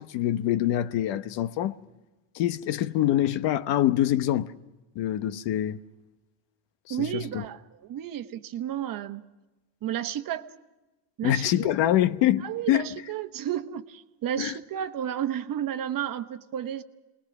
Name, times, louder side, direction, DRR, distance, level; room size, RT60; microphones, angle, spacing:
voice 1, 0.0-1.8 2.3-4.5 4.9-5.8 6.9-7.4 11.2-13.0 14.4-14.5, left 12 dB, 60° left, 1.1 m, -25 dB
voice 2, 6.9-9.2 9.8-10.5 11.2-11.7 12.4-16.8, right 10 dB, 45° right, 1.2 m, -32 dB
28.5 x 21.0 x 6.0 m
cardioid pair, 145°, 49 cm